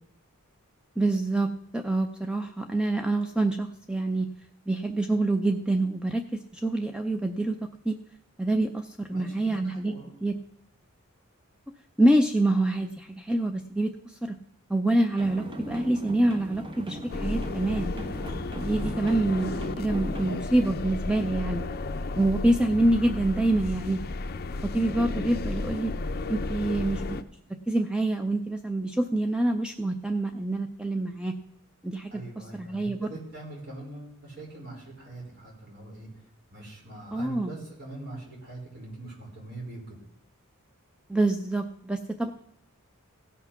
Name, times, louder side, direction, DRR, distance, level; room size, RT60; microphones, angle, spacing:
voice 1, 1.0-4.3 4.7-8.0 8.4-9.9 10.2-10.3 12.0-14.4 14.7-17.9 18.6-21.7 22.2-24.0 24.6-25.9 26.3-27.2 27.7-31.3 31.8-33.1 37.1-37.5 41.1-42.3, right 1 dB, 5° right, 6 dB, 0.4 m, -26 dB
voice 2, 9.1-10.2 18.6-19.3 32.1-36.1 36.5-40.0, right 2 dB, 50° right, -2 dB, 4.7 m, -42 dB
sound 1, 15.2-20.4, right 1 dB, 25° right, 1.0 m, -38 dB
sound 2, 17.1-27.2, left 3 dB, 45° left, 0.6 m, -33 dB
16.5 x 5.9 x 5.8 m, 0.76 s
head